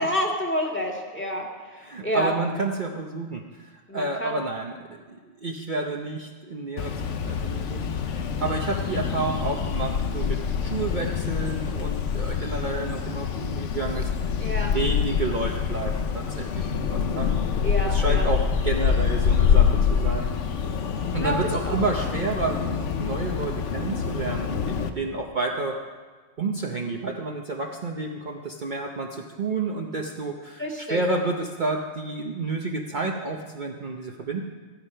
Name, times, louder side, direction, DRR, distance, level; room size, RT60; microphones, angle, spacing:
voice 1, 0.0-1.4 2.0-2.3 3.9-4.3 14.4-14.7 17.6-18.3 21.2-21.4 21.6-21.8 30.6-31.0, equal, 10° left, -1 dB, 1.9 m, -28 dB
voice 2, 1.7-14.1 14.6-17.3 17.6-20.3 21.1-25.8 26.4-34.4, right 3 dB, 45° right, 1 dB, 0.9 m, -30 dB
sound 1, 6.8-24.9, left 7 dB, 75° left, 1.2 m, -26 dB
14.0 x 11.5 x 5.6 m, 1.5 s
omnidirectional pair, 1.3 m